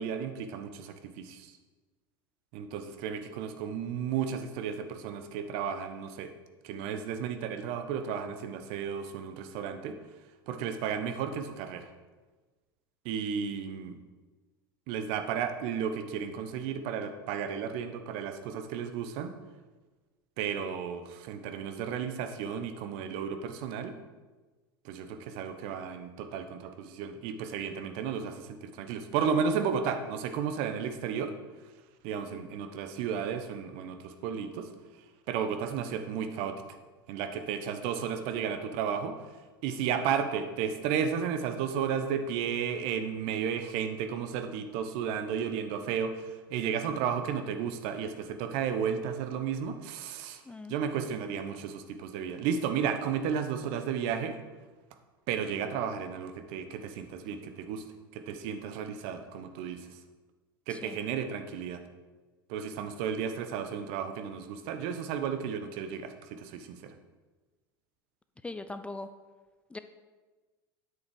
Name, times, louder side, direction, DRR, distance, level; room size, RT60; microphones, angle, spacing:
voice 1, 0.0-1.5 2.5-6.3 6.6-10.0 10.5-11.9 13.0-14.0 14.9-19.3 20.4-24.0 24.8-31.3 32.0-34.7 35.3-36.8 37.1-50.4 50.7-54.4 55.3-57.9 58.1-60.0 60.7-61.8 62.5-66.9, right 7 dB, 50° right, 8 dB, 1.0 m, -33 dB
voice 2, 68.4-69.1 69.7-69.8, left 2 dB, 10° left, 10 dB, 0.5 m, -40 dB
9.8 x 8.3 x 4.8 m, 1.3 s
figure-of-eight pair, 80°, 12 cm